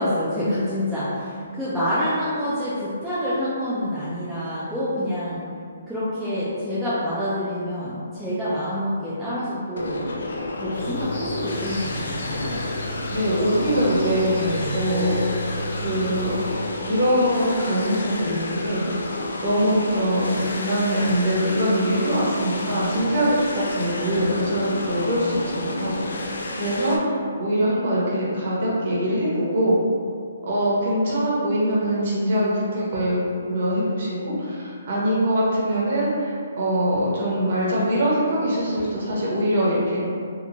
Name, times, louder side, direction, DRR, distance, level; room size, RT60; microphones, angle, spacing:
voice 1, 0.0-5.4 5.9-10.0 10.6-12.6 14.4-14.8, equal, ahead, -14 dB, 0.3 m, -27 dB
sound 1, 9.8-27.0, left 2 dB, 90° left, 0.3 m, -30 dB
sound 2, 10.7-16.6, left 1 dB, 60° left, 0.9 m, -34 dB
voice 2, 13.1-15.2 15.8-19.1 19.4-26.3 26.5-29.8 30.4-33.2 33.5-40.0, equal, 45° right, -7 dB, 0.8 m, -23 dB
2.9 x 2.2 x 2.5 m, 2.2 s
hypercardioid pair, 170°, 0 cm